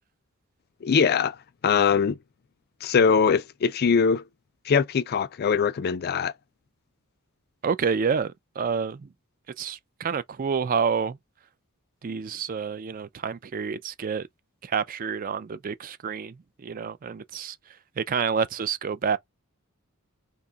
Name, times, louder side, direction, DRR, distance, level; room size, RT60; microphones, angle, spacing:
voice 1, 0.8-1.4 1.6-2.2 2.8-4.2 4.7-6.3, left 6 dB, 45° left, 0.3 m, -22 dB
voice 2, 7.6-9.1 9.6-11.2 12.0-14.3 14.6-17.6 18.0-19.2, right 6 dB, 40° right, 0.4 m, -28 dB
2.8 x 2.3 x 3.8 m
head